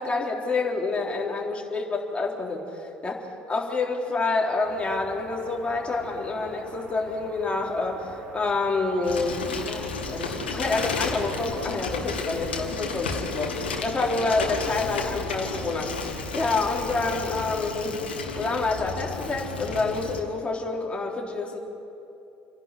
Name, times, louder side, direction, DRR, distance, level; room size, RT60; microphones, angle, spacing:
voice 1, 0.0-18.0 18.3-21.6, left 3 dB, 20° left, -1 dB, 3.9 m, -28 dB
sound 1, 4.6-12.0, right 2 dB, 65° right, 4.5 m, -46 dB
Bicycle, 9.0-20.2, left 4 dB, 85° left, 2.0 m, -32 dB
28.5 x 11.5 x 9.9 m, 2.8 s
hypercardioid pair, 65°, 6 cm